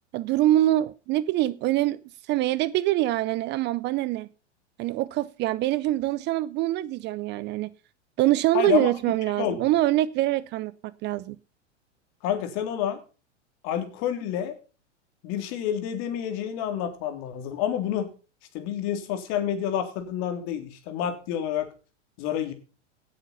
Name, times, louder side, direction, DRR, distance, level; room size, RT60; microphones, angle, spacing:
voice 1, 0.1-2.0 2.3-4.3 4.8-7.7 8.2-10.7 11.0-11.4, right 15 dB, 30° right, 0.6 m, -24 dB
voice 2, 8.5-8.9 9.4-9.6 12.2-13.0 13.6-14.5 15.2-18.1 18.5-21.7 22.2-22.5, left 10 dB, 45° left, 3.3 m, -28 dB
17.0 x 7.7 x 5.7 m
hypercardioid pair, 100°, 36 cm